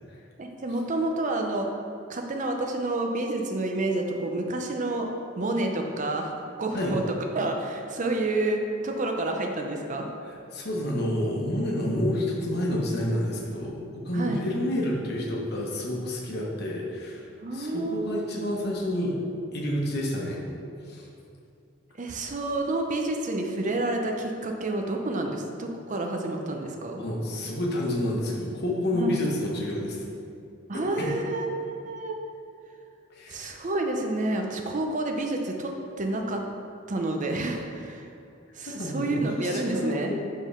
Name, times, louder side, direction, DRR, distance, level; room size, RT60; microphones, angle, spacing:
voice 1, 0.4-1.7 2.1-5.1 5.4-6.3 6.6-7.0 7.3-10.1 14.1-14.4 17.4-18.2 22.0-27.0 28.9-29.1 30.7-32.2 33.3-36.5 36.9-38.1 38.5-40.1, right 2 dB, 40° right, 2 dB, 0.6 m, -29 dB
voice 2, 10.5-17.3 17.5-19.1 19.5-20.4 20.9-21.0 27.0-30.0 30.7-31.1 33.2-33.4 38.7-40.1, left 1 dB, 55° left, -3 dB, 1.0 m, -29 dB
5.1 x 3.8 x 5.5 m, 2.6 s
head